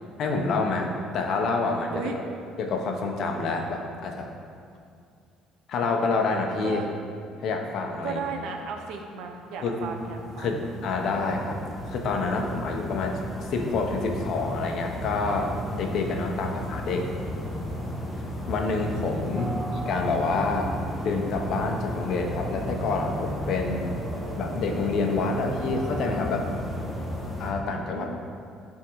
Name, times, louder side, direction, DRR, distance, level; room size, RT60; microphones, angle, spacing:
voice 1, 0.2-2.1 2.6-4.3 5.7-6.8 7.4-8.2 9.6-9.9 10.4-11.6 11.9-13.2 13.5-17.1 18.5-19.5 19.8-20.7 21.0-23.9 24.4-26.6 27.4-28.1, left 3 dB, 55° left, 2 dB, 0.9 m, -27 dB
voice 2, 8.0-10.6 19.4-19.7 27.9-28.1, right 5 dB, 70° right, 3 dB, 0.9 m, -35 dB
sound 1, 9.4-27.5, equal, 15° left, 1.3 m, -35 dB
sound 2, 19.4-26.3, right 2 dB, 15° right, 1.0 m, -39 dB
11.0 x 3.7 x 4.7 m, 2.3 s
cardioid pair, 135°, 0 cm